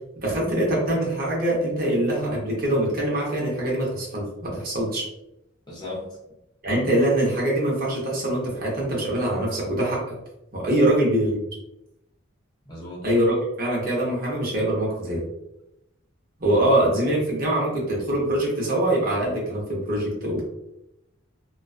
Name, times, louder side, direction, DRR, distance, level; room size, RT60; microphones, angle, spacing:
voice 1, 0.2-5.0 6.6-10.2 10.5-11.4 13.0-15.2 16.4-20.4, right 1 dB, 45° right, -4 dB, 0.8 m, -23 dB
voice 2, 5.7-6.1 10.7-10.8 12.7-13.0, left 2 dB, 20° left, -5 dB, 0.6 m, -36 dB
2.3 x 2.3 x 2.3 m, 0.87 s
head